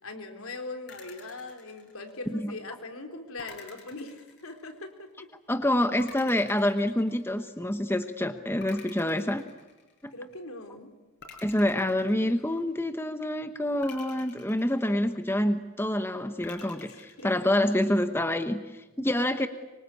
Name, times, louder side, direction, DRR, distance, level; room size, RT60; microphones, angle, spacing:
voice 1, 0.0-5.1 10.1-10.9 16.9-17.3, left 2 dB, 80° left, 5 dB, 3.8 m, -41 dB
sound 1, 0.9-2.5 3.4-5.0 6.0-7.7 8.6-10.2 11.2-12.9 13.8-15.5 16.4-17.8, left 4 dB, 50° left, 5.5 m, -50 dB
voice 2, 5.5-9.4 10.0-10.1 11.4-19.5, left 1 dB, 10° left, 8 dB, 1.0 m, -27 dB
25.0 x 24.5 x 8.5 m, 1.2 s
head